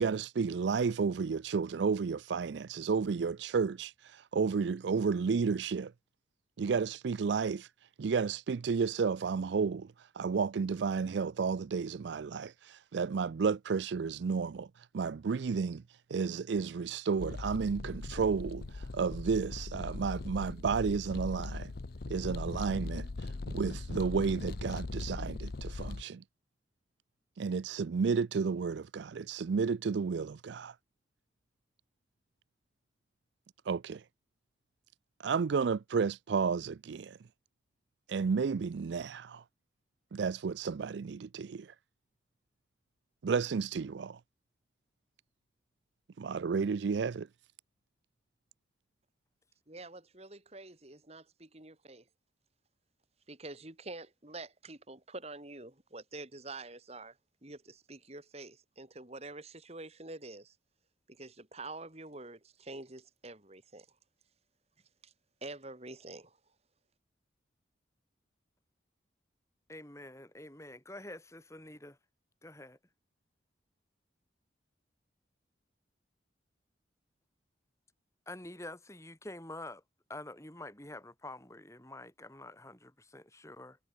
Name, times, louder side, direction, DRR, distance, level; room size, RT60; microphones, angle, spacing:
voice 1, 0.0-5.9 6.6-7.7 8.0-9.9 10.2-14.7 14.9-15.8 16.1-21.7 22.1-23.1 23.5-26.2 27.4-30.7 33.7-34.0 35.2-37.2 38.1-39.4 40.1-41.7 43.2-44.2 46.2-47.3, right 5 dB, 70° right, 0.4 m, -32 dB
sound 1, 17.2-26.0, left 3 dB, 55° left, 0.6 m, -40 dB
voice 2, 49.7-52.0 53.3-57.2 57.4-60.5 61.1-63.9 65.0-65.1 65.4-66.4, right 2 dB, 35° right, 2.6 m, -47 dB
voice 3, 69.7-72.0 72.4-72.8 78.3-79.8 80.1-83.8, left 1 dB, 15° left, 5.0 m, -47 dB
head